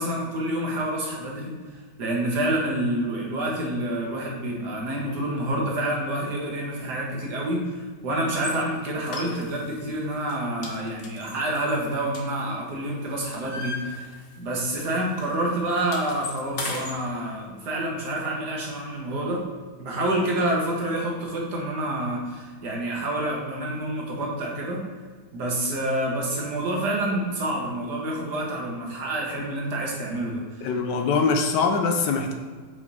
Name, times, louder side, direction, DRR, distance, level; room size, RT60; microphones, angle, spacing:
voice 1, 0.0-1.5 2.0-19.4 19.8-24.8 25.3-30.7, right 1 dB, 75° right, -2 dB, 1.9 m, -28 dB
sound 1, 8.3-8.6 9.1-9.8 10.1-10.3 10.6-12.7 13.0-14.5 14.7-14.9 15.2-17.0, left 3 dB, 45° left, 0.8 m, -36 dB
voice 2, 30.6-32.3, left 4 dB, 85° left, 5 dB, 1.4 m, -23 dB
5.7 x 4.9 x 4.1 m, 1.5 s
omnidirectional pair, 1.8 m